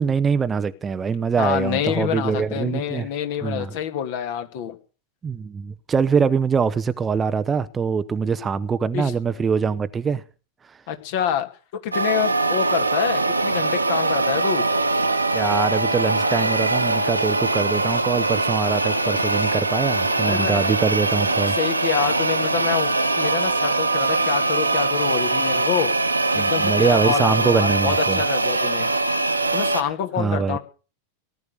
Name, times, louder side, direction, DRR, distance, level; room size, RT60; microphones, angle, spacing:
voice 1, 0.0-3.1 3.4-3.8 5.2-10.2 10.7-10.8 15.3-21.6 26.3-28.2 30.2-30.6, right 6 dB, 20° right, 0.8 m, -23 dB
voice 2, 1.4-4.8 8.9-9.1 10.9-11.5 11.8-14.7 20.2-22.9 23.2-25.9 26.3-28.9 29.5-30.6, left 9 dB, 50° left, 2.6 m, -27 dB
sound 1, 11.9-29.8, right 2 dB, 80° right, 1.5 m, -22 dB
18.5 x 11.0 x 6.6 m
figure-of-eight pair, 90°, 0 cm